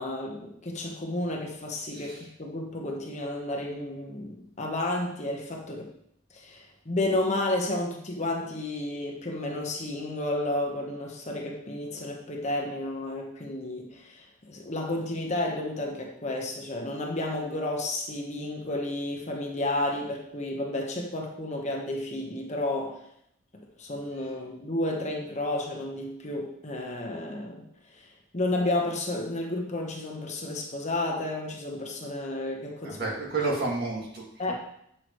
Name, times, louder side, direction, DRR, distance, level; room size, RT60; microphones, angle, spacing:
voice 1, 0.0-5.9 6.3-23.1 23.8-27.6 27.9-33.0 33.4-33.5 34.4-34.5, left 1 dB, 35° left, 1 dB, 1.1 m, -32 dB
voice 2, 1.9-2.3 32.8-34.5, right 3 dB, 50° right, -2 dB, 2.0 m, -31 dB
8.3 x 5.8 x 3.1 m, 0.72 s
head